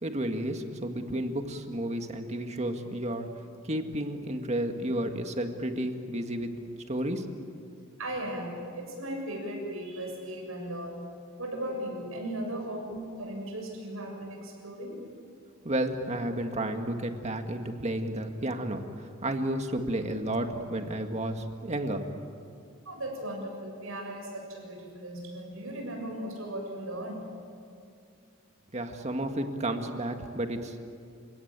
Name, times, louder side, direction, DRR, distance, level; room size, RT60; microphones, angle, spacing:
voice 1, 0.0-3.3 3.6-6.5 6.9-7.3 15.6-22.2 28.7-30.8, right 1 dB, 35° right, 5 dB, 1.8 m, -32 dB
voice 2, 8.0-11.1 11.4-15.0 22.9-27.3, right 1 dB, 90° right, 1 dB, 7.2 m, -37 dB
29.5 x 17.5 x 9.0 m, 2.3 s
head